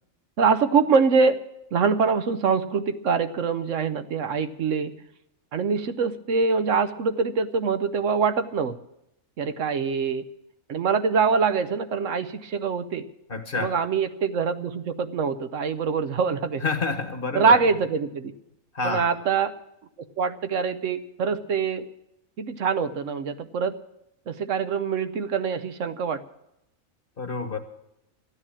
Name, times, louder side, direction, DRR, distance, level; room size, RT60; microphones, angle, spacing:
voice 1, 0.4-1.4 1.7-4.9 5.5-8.8 9.4-10.2 10.7-13.0 13.5-16.6 17.3-18.3 18.8-19.5 20.2-21.8 22.4-23.7 24.3-26.2, right 5 dB, 70° right, 11 dB, 1.1 m, -24 dB
voice 2, 13.3-13.7 16.6-17.6 18.7-19.1 27.2-27.6, left 4 dB, 45° left, 7 dB, 1.5 m, -28 dB
13.5 x 9.9 x 8.6 m, 0.84 s
omnidirectional pair, 1.4 m